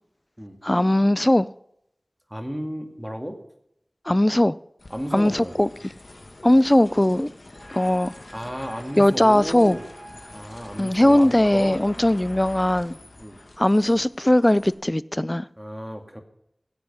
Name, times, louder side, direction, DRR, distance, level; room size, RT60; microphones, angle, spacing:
voice 1, 0.6-1.5 4.1-4.6 5.1-5.7 6.4-7.3 7.7-8.1 9.0-9.8 10.8-13.0 13.6-15.5, left 1 dB, 25° left, 18 dB, 0.4 m, -19 dB
voice 2, 2.3-3.4 4.9-5.6 8.3-9.8 10.3-11.8 13.2-13.4 15.6-16.2, equal, 5° right, 4 dB, 2.3 m, -33 dB
sound 1, 4.8-14.7, left 2 dB, 70° left, 1.9 m, -45 dB
sound 2, 7.5-13.0, right 1 dB, 85° right, 4.5 m, -50 dB
16.0 x 8.1 x 5.5 m, 0.76 s
wide cardioid pair, 45°, 0 cm